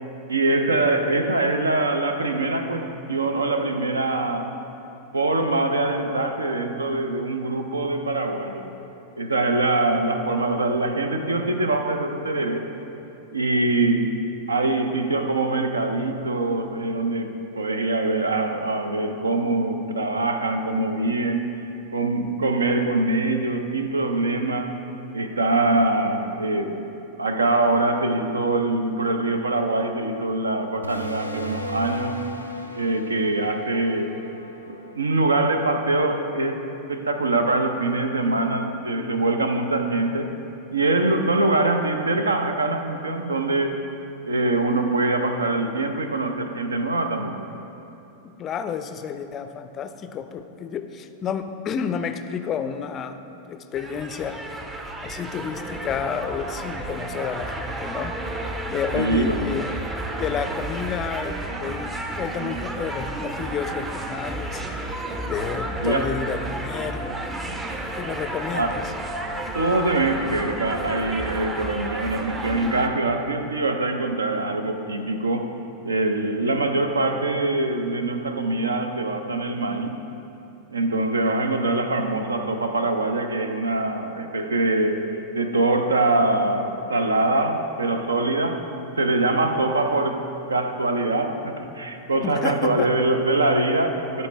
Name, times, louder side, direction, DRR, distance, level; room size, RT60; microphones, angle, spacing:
voice 1, 0.3-4.5 5.1-8.7 9.2-12.7 13.3-14.1 14.5-21.5 21.9-24.8 25.1-26.9 27.2-32.2 32.8-34.2 34.9-40.3 40.7-43.8 44.3-47.4 58.9-59.6 65.8-66.1 68.5-68.8 69.5-75.6 75.8-80.0 80.7-85.1 85.3-88.6 89.0-94.3, right 2 dB, 75° right, 7 dB, 0.5 m, -23 dB
sound 1, 30.8-36.0, left 1 dB, 90° left, 0.5 m, -37 dB
voice 2, 48.2-53.2 53.5-54.4 55.0-58.2 58.7-59.7 60.0-64.6 65.3-67.1 68.0-68.8 92.2-92.9, left 7 dB, 30° left, 9 dB, 0.4 m, -30 dB
sound 2, 53.7-72.9, right 2 dB, 20° right, 0.6 m, -31 dB
12.0 x 4.2 x 3.3 m, 2.9 s
figure-of-eight pair, 90°, 0 cm